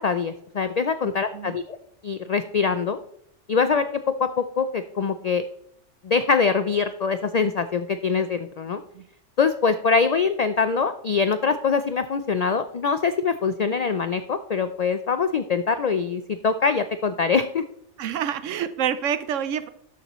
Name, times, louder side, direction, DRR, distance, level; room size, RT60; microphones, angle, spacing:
voice 1, 0.0-1.8 2.0-3.0 3.5-5.4 6.0-8.8 9.4-17.6, left 5 dB, 80° left, 11 dB, 0.3 m, -23 dB
voice 2, 18.0-19.7, right 9 dB, 80° right, 12 dB, 1.0 m, -27 dB
12.5 x 7.0 x 3.0 m, 0.71 s
omnidirectional pair, 1.3 m